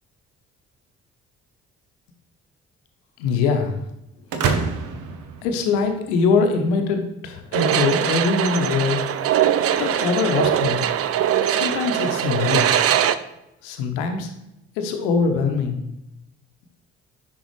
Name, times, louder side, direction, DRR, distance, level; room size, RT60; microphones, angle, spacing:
voice 1, 3.2-3.8 5.4-9.0 9.8-10.8 11.5-13.0 13.6-14.3 14.8-15.8, left 5 dB, 75° left, 5 dB, 0.9 m, -22 dB
sound 1, 4.3-6.2, right 5 dB, 60° right, 0.9 m, -26 dB
sound 2, 7.5-13.2, right 10 dB, 40° right, 0.5 m, -21 dB
10.0 x 4.0 x 3.2 m, 0.86 s
figure-of-eight pair, 40°, 36 cm